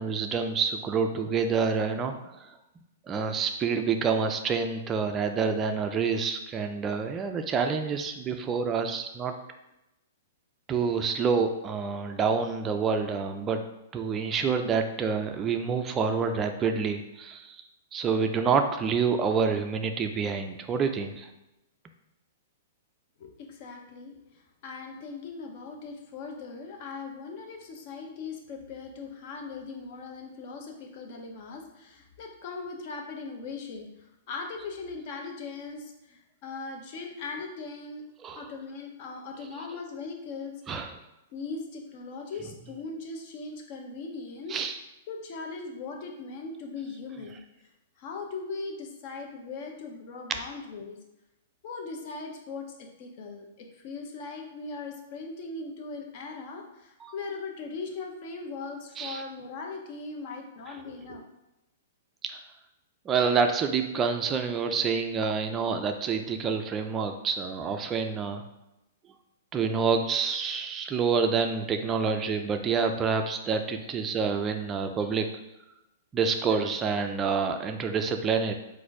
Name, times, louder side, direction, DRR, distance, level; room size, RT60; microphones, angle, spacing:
voice 1, 0.0-2.1 2.4-2.5 3.1-9.3 10.7-13.6 13.9-17.6 17.9-21.3 38.2-38.4 40.7-40.9 44.5-44.8 57.0-57.1 59.0-59.2 62.2-62.4 63.1-68.4 69.5-75.3 76.1-78.5, right 5 dB, 20° right, 6 dB, 0.4 m, -27 dB
voice 2, 23.2-24.1 24.6-33.9 34.3-38.0 38.3-40.8 41.3-44.6 45.1-47.4 48.0-51.0 51.6-61.2, left 4 dB, 45° left, 2 dB, 0.8 m, -39 dB
4.2 x 2.6 x 4.7 m, 0.93 s
hypercardioid pair, 155°, 0 cm